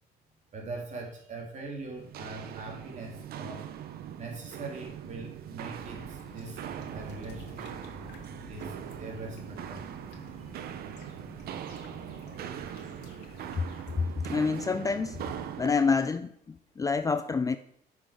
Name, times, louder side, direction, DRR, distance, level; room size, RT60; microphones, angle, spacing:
voice 1, 0.5-3.6 4.2-6.6 6.9-7.8 8.5-9.9, right 2 dB, 45° right, 2.7 m, -42 dB
Walk footsteps, 2.0-15.8, right 9 dB, 65° right, 0.8 m, -41 dB
sound 1, 5.8-14.1, left 4 dB, 85° left, 1.5 m, -50 dB
voice 2, 14.0-15.2 15.6-17.6, left 5 dB, 20° left, 0.4 m, -27 dB
9.5 x 6.2 x 4.9 m
cardioid pair, 110°, 17 cm